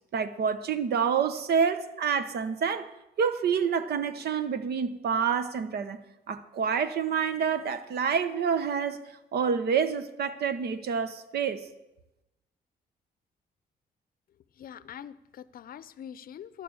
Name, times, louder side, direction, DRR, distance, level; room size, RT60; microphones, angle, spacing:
voice 1, 0.1-2.9 3.2-6.0 6.3-9.0 9.3-11.6, right 6 dB, 70° right, 1.0 m, -28 dB
voice 2, 14.6-16.6, left 9 dB, 60° left, 0.6 m, -44 dB
11.5 x 6.8 x 8.8 m
cardioid pair, 95°, 17 cm